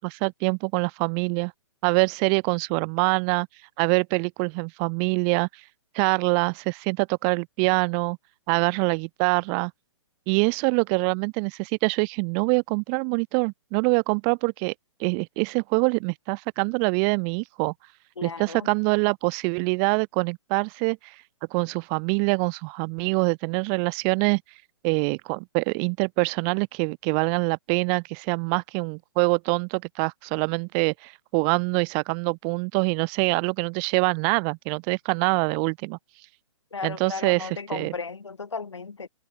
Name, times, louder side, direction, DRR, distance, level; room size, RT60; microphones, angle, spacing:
voice 1, 0.0-1.5 1.8-3.5 3.8-5.5 5.9-8.2 8.5-9.7 10.3-14.7 15.0-17.7 18.2-21.1 21.5-24.4 24.8-36.0 36.8-37.9, right 40 dB or more, 30° right, 0.9 m, -25 dB
voice 2, 18.2-18.7 36.7-39.1, left 4 dB, 75° left, 2.9 m, -35 dB
figure-of-eight pair, 120°, 15 cm